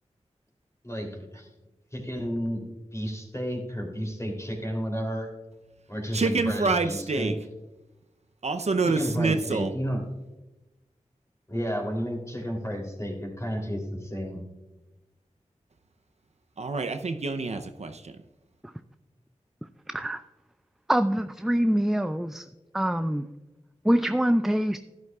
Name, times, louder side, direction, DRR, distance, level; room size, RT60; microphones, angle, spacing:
voice 1, 0.8-1.5 1.9-5.3 5.9-7.4 8.8-10.0 11.5-14.4, equal, 25° left, 1 dB, 3.1 m, -32 dB
voice 2, 6.1-7.3 8.4-9.7 16.6-18.1, right 3 dB, 65° right, 7 dB, 0.6 m, -27 dB
voice 3, 19.9-20.2 20.9-22.4 22.7-23.3 23.8-24.8, right 1 dB, 5° right, 10 dB, 0.4 m, -24 dB
12.0 x 10.5 x 2.4 m, 1.0 s
cardioid pair, 50°, 12 cm